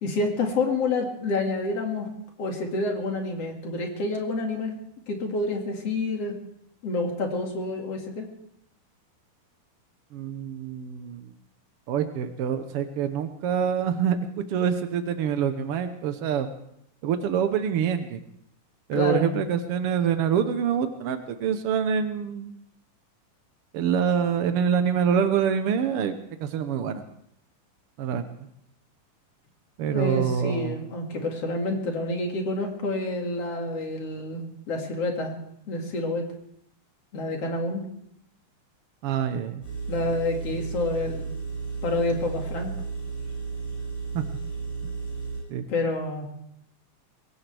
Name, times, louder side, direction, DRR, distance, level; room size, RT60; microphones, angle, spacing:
voice 1, 0.0-2.1 2.4-4.7 5.1-6.4 6.8-8.2 18.9-19.4 29.9-35.3 35.7-36.2 37.1-37.8 39.9-41.3 41.8-42.7 45.7-46.3, left 2 dB, 50° left, 2 dB, 3.0 m, -28 dB
voice 2, 10.1-11.3 11.9-14.2 14.5-16.5 17.0-18.2 18.9-22.5 23.7-27.0 28.0-28.3 29.8-30.8 39.0-39.6 44.1-44.2 45.5-45.7, right 8 dB, 80° right, 8 dB, 1.3 m, -26 dB
Engine, 39.6-45.4, right 5 dB, 70° left, 8.1 m, -33 dB
23.0 x 17.5 x 3.4 m, 0.72 s
omnidirectional pair, 3.7 m